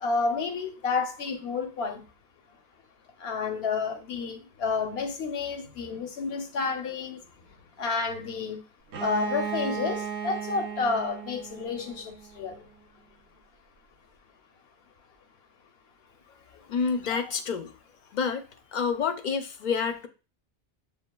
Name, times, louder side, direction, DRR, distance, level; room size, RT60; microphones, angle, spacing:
voice 1, 0.0-2.0 3.2-7.2 7.8-8.6 9.0-12.7 17.1-17.2, left 4 dB, 80° left, 1.0 m, -30 dB
Bowed string instrument, 8.9-12.6, right 7 dB, 65° right, 0.7 m, -35 dB
voice 2, 16.7-17.7 18.1-18.4 18.7-20.1, left 6 dB, 55° left, 0.6 m, -28 dB
6.9 x 2.5 x 2.2 m
omnidirectional pair, 1.0 m